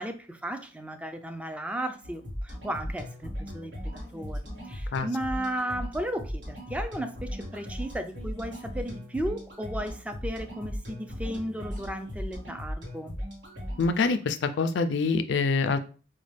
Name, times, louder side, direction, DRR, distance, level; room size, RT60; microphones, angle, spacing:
voice 1, 0.0-13.2, right 1 dB, 5° right, 7 dB, 0.3 m, -35 dB
sound 1, 2.0-14.0, equal, 75° right, 1.4 m, -37 dB
voice 2, 13.8-15.8, left 4 dB, 70° left, 10 dB, 0.4 m, -25 dB
4.1 x 2.2 x 3.2 m, 0.37 s
head